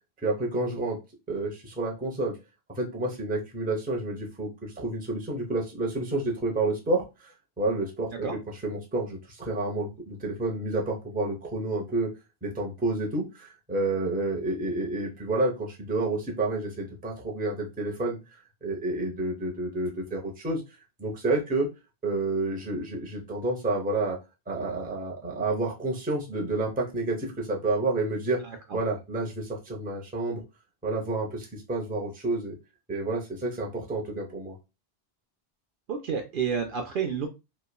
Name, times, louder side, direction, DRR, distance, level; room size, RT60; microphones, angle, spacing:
voice 1, 0.2-1.0 1.3-2.3 2.8-8.3 8.6-12.1 12.4-18.2 18.6-20.6 21.0-21.7 22.0-24.2 24.5-28.4 28.7-30.4 30.8-32.5 32.9-34.5, right 2 dB, 10° right, -1 dB, 0.5 m, -29 dB
voice 2, 35.9-37.3, right 6 dB, 60° right, 4 dB, 0.6 m, -29 dB
3.0 x 2.2 x 2.2 m, 0.26 s
omnidirectional pair, 1.1 m